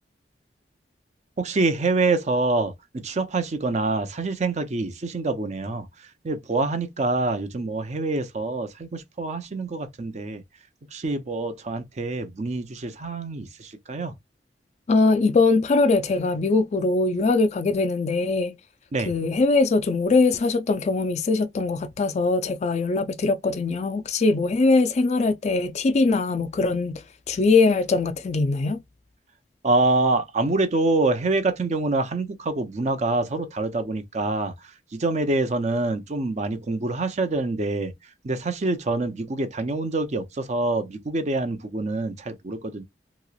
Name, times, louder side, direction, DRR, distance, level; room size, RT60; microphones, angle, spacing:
voice 1, 1.4-5.9 6.2-10.4 10.9-14.1 18.9-19.1 29.6-34.5 34.9-37.9 38.2-42.8, right 2 dB, 40° right, 0.6 m, -26 dB
voice 2, 14.9-18.6 19.0-28.8, left 3 dB, 40° left, 0.3 m, -22 dB
3.0 x 2.9 x 2.3 m
head